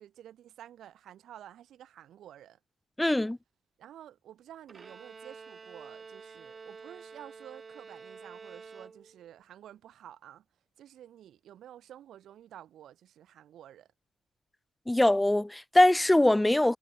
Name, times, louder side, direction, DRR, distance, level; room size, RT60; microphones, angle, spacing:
voice 1, 0.0-2.6 3.8-10.4 10.8-13.9, right 11 dB, 80° right, 1.0 m, -51 dB
voice 2, 3.0-3.4 14.9-16.8, left 1 dB, 15° left, 0.3 m, -22 dB
Bowed string instrument, 4.7-9.4, right 5 dB, 45° right, 0.9 m, -49 dB
supercardioid pair, 50°, 0 cm